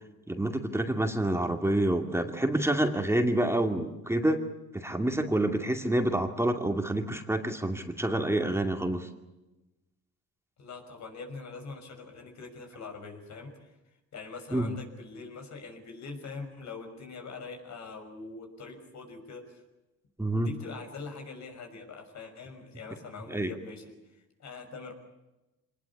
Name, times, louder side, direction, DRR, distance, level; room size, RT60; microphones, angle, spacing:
voice 1, 0.3-4.4 4.7-9.1 14.5-14.8 20.2-20.5 23.3-23.5, right 1 dB, 10° right, 5 dB, 2.4 m, -28 dB
voice 2, 10.6-13.7 14.1-19.6 20.4-23.8 24.1-24.9, left 4 dB, 65° left, 4 dB, 6.1 m, -43 dB
25.0 x 20.0 x 8.5 m, 1.0 s
cardioid pair, 90°, 30 cm